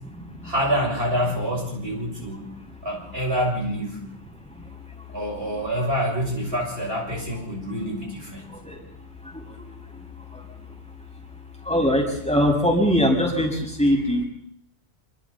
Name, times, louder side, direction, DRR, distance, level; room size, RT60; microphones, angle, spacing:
voice 1, 0.4-2.5 2.8-4.0 5.1-8.4, equal, 65° right, -1 dB, 7.6 m, -26 dB
voice 2, 11.7-13.5 13.8-14.2, equal, 5° left, 0 dB, 6.2 m, -20 dB
28.0 x 28.0 x 4.2 m, 0.67 s
omnidirectional pair, 1.1 m